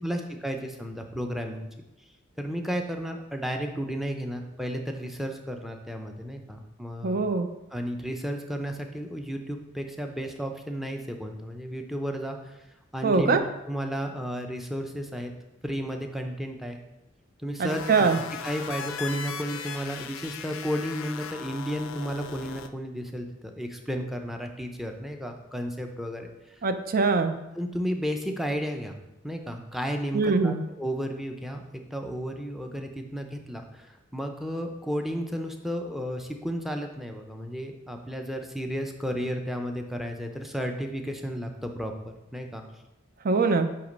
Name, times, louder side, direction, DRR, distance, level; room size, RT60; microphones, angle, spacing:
voice 1, 0.0-1.7 2.4-7.2 7.7-12.6 12.9-13.4 13.7-15.3 15.6-16.8 17.4-18.1 18.4-26.6 27.6-29.0 29.2-42.6, equal, ahead, 4 dB, 0.6 m, -33 dB
voice 2, 7.0-7.5 13.0-13.4 17.6-18.2 26.6-27.3 30.1-30.6 43.2-43.7, right 4 dB, 45° right, 8 dB, 0.5 m, -23 dB
sound 1, 17.7-22.7, left 7 dB, 90° left, 0.5 m, -38 dB
8.3 x 2.9 x 5.2 m, 0.93 s
head